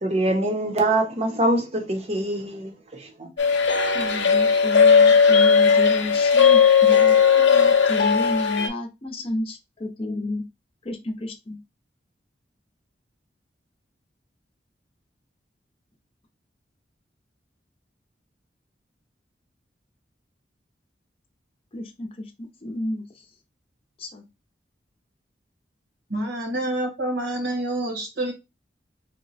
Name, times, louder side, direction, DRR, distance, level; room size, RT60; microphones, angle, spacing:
voice 1, 0.0-3.3, right 1 dB, 35° right, 0.7 m, -24 dB
sound 1, 3.4-8.7, left 6 dB, 90° left, 0.6 m, -17 dB
voice 2, 3.9-10.4 10.8-11.6 21.7-23.3 24.0-24.2, left 2 dB, 35° left, 0.6 m, -31 dB
voice 3, 26.1-28.3, right 1 dB, 70° right, 1.1 m, -27 dB
2.9 x 2.1 x 4.0 m
head